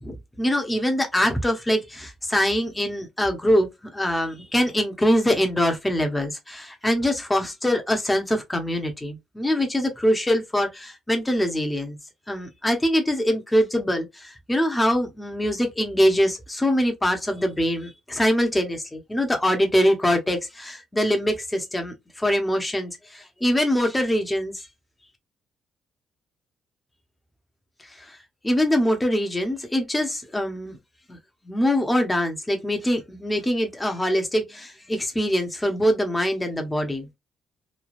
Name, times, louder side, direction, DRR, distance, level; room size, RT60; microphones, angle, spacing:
voice 1, 0.0-3.7 3.9-12.0 12.3-24.7 27.9-28.2 28.4-30.8 31.1-31.2 31.4-37.1, equal, 15° left, 0.9 m, -23 dB
3.2 x 2.2 x 2.5 m
cardioid pair, 90°, 0 cm